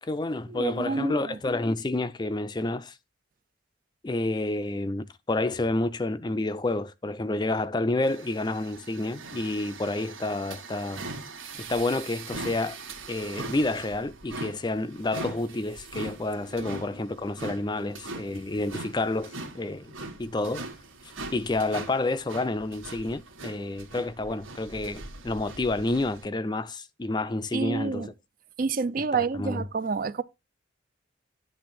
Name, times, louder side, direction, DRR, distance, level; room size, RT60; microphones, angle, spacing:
voice 1, 0.0-3.0 4.0-11.0 11.6-12.8 13.1-19.9 20.2-20.6 21.3-28.1 29.1-29.6, left 2 dB, 20° left, 0.4 m, -29 dB
voice 2, 0.5-1.4 16.6-16.7 27.5-28.1 28.6-30.2, right 4 dB, 45° right, 0.4 m, -28 dB
sound 1, 8.0-26.3, right 3 dB, 90° right, 1.7 m, -41 dB
10.0 x 3.5 x 5.9 m
head